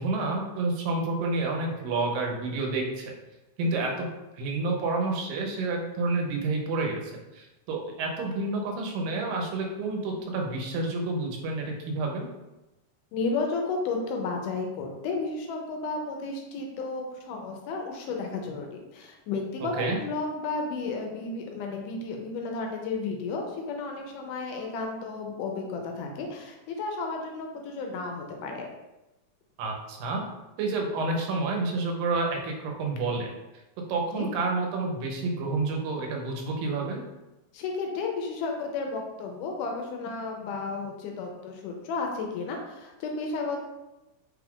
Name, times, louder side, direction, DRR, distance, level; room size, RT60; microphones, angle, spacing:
voice 1, 0.0-3.1 3.6-4.1 4.3-12.3 19.8-20.0 29.6-30.2 30.6-33.3 33.9-37.0, right 3 dB, 85° right, 1 dB, 2.4 m, -29 dB
voice 2, 13.1-28.7 34.1-34.3 37.5-43.6, left 3 dB, 80° left, 2 dB, 2.0 m, -33 dB
5.2 x 2.3 x 3.5 m, 1.0 s
omnidirectional pair, 3.9 m